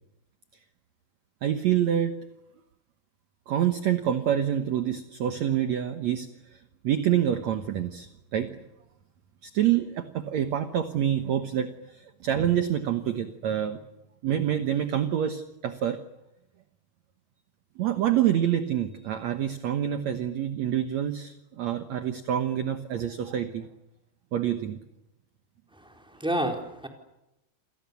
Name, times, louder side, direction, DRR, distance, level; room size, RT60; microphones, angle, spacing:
voice 1, 1.4-2.1 3.5-6.3 6.8-8.5 9.4-13.8 14.2-16.0 17.8-23.7 24.3-24.8, right 10 dB, 60° right, 8 dB, 2.1 m, -27 dB
voice 2, 25.7-26.9, right 1 dB, ahead, 2 dB, 4.0 m, -30 dB
28.5 x 27.5 x 7.1 m, 0.90 s
omnidirectional pair, 4.1 m